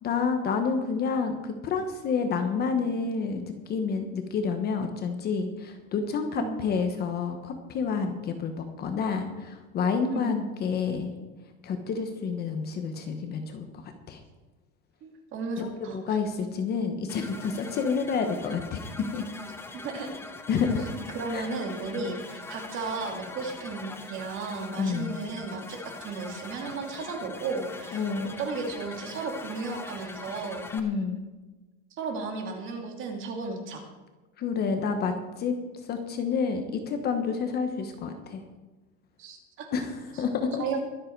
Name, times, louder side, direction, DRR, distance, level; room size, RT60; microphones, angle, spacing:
voice 1, 0.0-11.1 11.6-14.2 15.6-19.2 20.5-20.9 21.3-21.5 21.9-22.0 24.8-25.1 27.9-28.4 30.7-31.2 34.4-35.5 35.8-38.4 39.7-40.6, left 5 dB, 30° left, 6 dB, 1.1 m, -29 dB
voice 2, 15.0-16.2 19.7-20.1 21.1-28.1 28.4-30.7 31.9-33.8 39.2-39.7 40.6-40.8, right 4 dB, 35° right, 3 dB, 2.5 m, -34 dB
sound 1, 17.1-30.8, left 3 dB, 5° left, 0.7 m, -43 dB
23.0 x 7.7 x 4.6 m, 1.2 s
cardioid pair, 170°, 34 cm